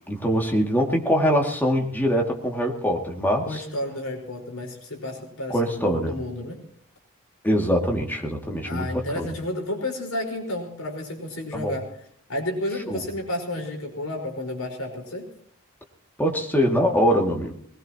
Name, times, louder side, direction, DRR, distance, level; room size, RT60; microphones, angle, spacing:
voice 1, 0.1-3.6 5.5-6.2 7.4-9.3 11.5-11.7 12.9-13.0 16.2-17.6, equal, 10° left, 1 dB, 2.5 m, -23 dB
voice 2, 3.4-6.6 8.7-11.9 12.3-15.3, left 1 dB, 70° left, 2 dB, 5.0 m, -31 dB
22.0 x 20.5 x 3.0 m, 0.63 s
head